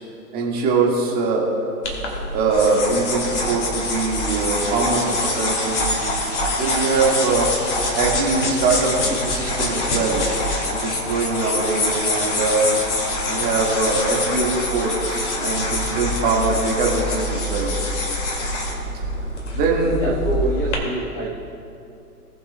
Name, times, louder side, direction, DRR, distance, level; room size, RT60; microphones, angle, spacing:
voice 1, 0.3-1.5 2.3-5.8 6.6-7.6 8.0-10.3 10.7-12.7 13.3-17.7 19.6-20.0, right 4 dB, 20° right, -2 dB, 1.7 m, -22 dB
sound 1, 1.8-20.7, left 2 dB, 45° left, 2.2 m, -25 dB
voice 2, 19.9-21.3, right 2 dB, 5° left, -4 dB, 0.6 m, -26 dB
19.5 x 7.1 x 2.2 m, 2.6 s
figure-of-eight pair, 130°, 48 cm